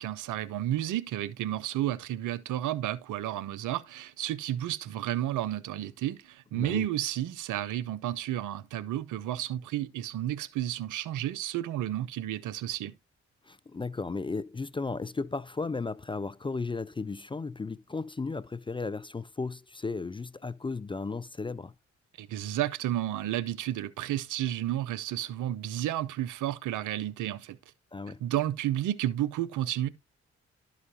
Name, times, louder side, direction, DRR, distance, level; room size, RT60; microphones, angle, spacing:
voice 1, 0.0-12.9 22.2-27.6 28.2-29.9, right 13 dB, 75° right, 0.6 m, -32 dB
voice 2, 6.5-6.9 13.4-21.7 27.9-28.2, left 4 dB, 15° left, 0.4 m, -35 dB
12.0 x 5.0 x 2.7 m
hypercardioid pair, 45°, 31 cm